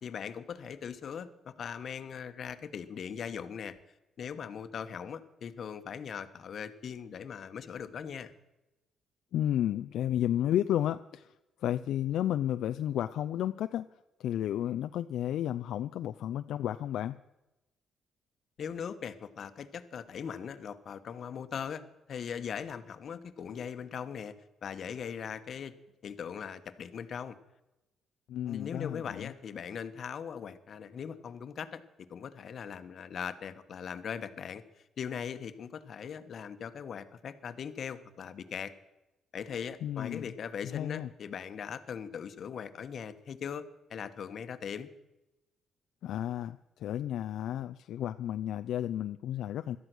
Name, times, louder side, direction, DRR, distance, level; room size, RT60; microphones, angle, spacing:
voice 1, 0.0-3.8 4.2-8.3 18.6-21.8 22.1-24.3 24.6-25.7 26.0-27.4 28.5-34.6 35.0-38.7 39.3-44.9, left 7 dB, 55° left, 11 dB, 1.2 m, -40 dB
voice 2, 9.3-11.3 11.6-13.9 14.2-17.2 28.3-29.3 39.8-40.3 40.6-41.1 46.0-49.8, left 11 dB, 80° left, 10 dB, 0.5 m, -32 dB
18.0 x 12.5 x 6.2 m, 0.97 s
cardioid pair, 90°, 0 cm